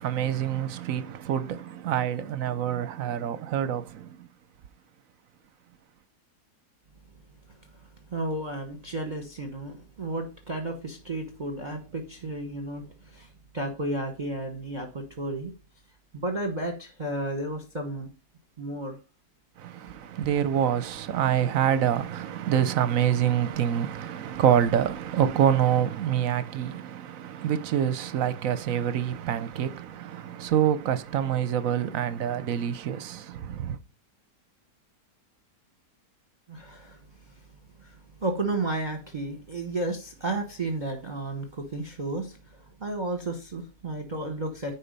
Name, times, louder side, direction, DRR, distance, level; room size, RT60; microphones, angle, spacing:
voice 1, 0.0-4.3 19.6-33.8, right 9 dB, 65° right, 1.0 m, -26 dB
voice 2, 7.5-7.8 8.1-15.5 16.1-18.1 18.6-19.0 36.5-37.0 37.4-37.5 37.8-44.8, right 2 dB, 30° right, 1.1 m, -33 dB
10.0 x 4.4 x 5.3 m
omnidirectional pair, 1.7 m